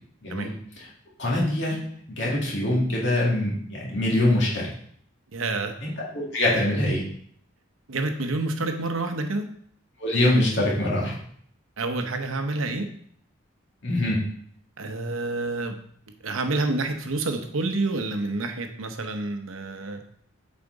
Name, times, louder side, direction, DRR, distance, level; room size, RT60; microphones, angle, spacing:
voice 1, 1.2-1.8 2.1-4.7 5.8-7.0 10.0-11.1 13.8-14.2, left 1 dB, 60° left, -5 dB, 2.1 m, -24 dB
voice 2, 5.3-5.7 7.9-9.4 11.8-12.9 14.8-15.8 16.2-20.0, right 2 dB, 80° right, 6 dB, 0.8 m, -28 dB
7.2 x 4.3 x 3.9 m, 0.63 s
head